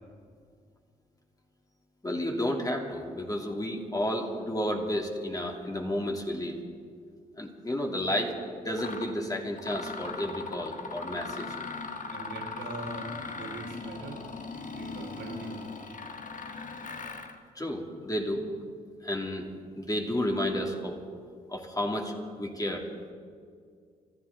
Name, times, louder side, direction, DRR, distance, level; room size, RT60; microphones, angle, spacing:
voice 1, 2.0-6.6 7.4-11.6 17.5-18.4 19.0-19.5 19.8-21.0 21.5-22.9, left 1 dB, 20° left, 1 dB, 2.7 m, -31 dB
Mechanisms, 8.1-8.2 8.7-9.1 9.6-17.4, left 4 dB, 40° left, 1.7 m, -39 dB
voice 2, 12.1-14.2 14.7-15.7, right 3 dB, 65° right, 1 dB, 2.8 m, -41 dB
25.0 x 13.5 x 4.1 m, 2.1 s
hypercardioid pair, 45°, 20 cm